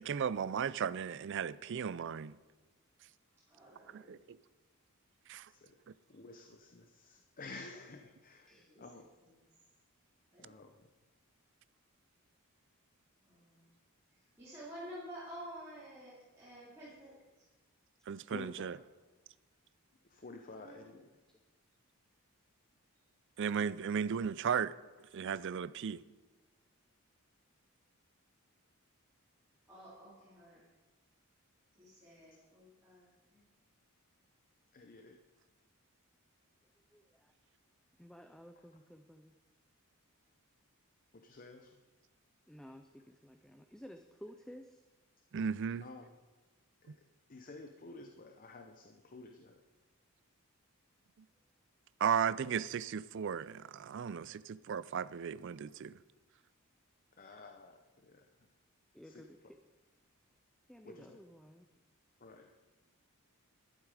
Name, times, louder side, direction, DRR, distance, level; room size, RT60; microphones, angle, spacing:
voice 1, 0.0-2.4 3.9-4.2 5.3-5.5 18.1-18.8 23.4-24.7 25.1-26.0 45.3-45.8 52.0-55.9, right 7 dB, 55° right, 0.4 m, -35 dB
voice 2, 3.5-4.2 8.5-8.8 10.3-10.6 13.2-13.7 14.2-17.4 20.5-21.0 24.0-24.1 29.7-30.7 31.8-33.4, equal, 10° right, 3.6 m, -51 dB
voice 3, 6.1-8.5 8.8-9.1 10.4-10.9 18.2-18.8 20.1-21.1 34.7-35.2 38.5-38.6 41.1-41.7 45.8-46.1 46.8-47.0 47.3-49.6 54.1-54.2 57.2-58.2 59.0-59.3 60.8-61.2 62.2-62.5, left 3 dB, 40° left, 0.8 m, -52 dB
voice 4, 36.9-37.3 38.0-39.3 42.5-44.8 58.9-59.6 60.7-61.7, equal, 5° left, 0.5 m, -54 dB
12.0 x 11.5 x 4.9 m
head